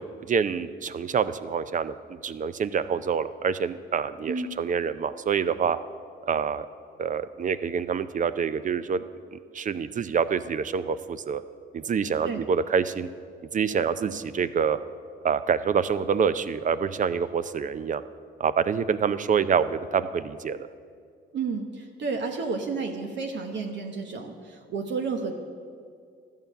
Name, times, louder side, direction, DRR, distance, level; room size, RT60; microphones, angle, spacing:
voice 1, 0.0-5.8 6.3-6.7 7.0-9.0 9.3-11.4 11.7-13.1 13.5-14.8 15.2-18.0 18.4-20.6, right 6 dB, 40° right, 14 dB, 0.5 m, -26 dB
voice 2, 21.3-25.3, right 4 dB, 65° right, 3 dB, 1.1 m, -31 dB
12.5 x 5.5 x 9.1 m, 2.2 s
cardioid pair, 90°, 20 cm